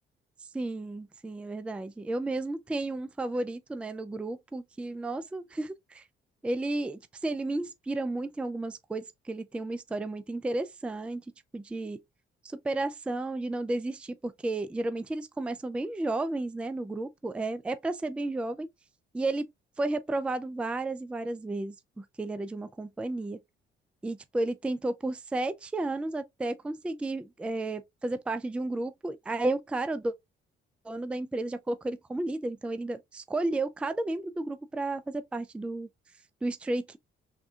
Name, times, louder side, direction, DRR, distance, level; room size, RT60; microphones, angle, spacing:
voice 1, 0.5-6.0 6.4-11.2 11.5-12.0 12.4-18.7 19.1-19.5 19.8-23.4 24.0-30.1 30.9-35.9 36.4-37.0, right 2 dB, 5° right, 0.3 m, -32 dB
3.6 x 2.6 x 2.3 m
cardioid pair, 90°, 20 cm